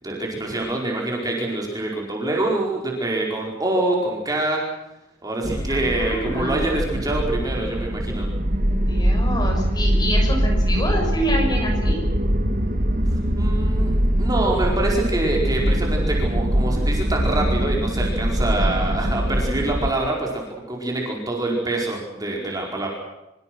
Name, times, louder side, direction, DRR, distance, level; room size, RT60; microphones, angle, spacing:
voice 1, 0.0-4.6 5.2-8.3 13.3-13.9 14.2-22.9, right 2 dB, 20° right, -1 dB, 4.9 m, -25 dB
sound 1, 5.4-19.9, equal, 50° right, 1.9 m, -22 dB
voice 2, 5.7-6.6 8.7-12.0, equal, 25° left, 2 dB, 6.8 m, -27 dB
25.5 x 24.0 x 6.3 m, 0.94 s
head